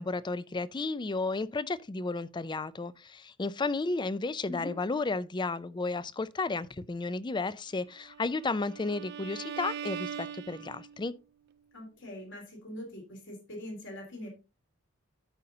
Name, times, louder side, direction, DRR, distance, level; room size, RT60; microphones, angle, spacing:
voice 1, 0.0-11.1, left 3 dB, 20° left, 0.4 m, -33 dB
Bowed string instrument, 8.0-11.1, right 8 dB, 55° right, 0.4 m, -41 dB
voice 2, 11.7-14.3, left 1 dB, 65° left, 3.3 m, -42 dB
13.5 x 5.3 x 2.8 m
head